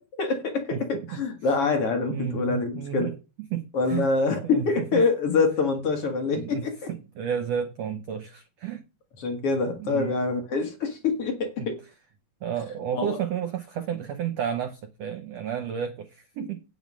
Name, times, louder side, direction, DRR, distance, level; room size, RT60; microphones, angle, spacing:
voice 1, 0.2-3.1 3.7-6.9 9.2-11.8 12.9-13.2, left 4 dB, 50° left, 2.1 m, -25 dB
voice 2, 2.1-3.1 3.5-4.1 4.4-5.1 6.3-8.8 9.8-10.1 11.6-11.7 12.4-16.6, right 8 dB, 80° right, 1.4 m, -32 dB
9.1 x 7.2 x 6.1 m
omnidirectional pair, 4.1 m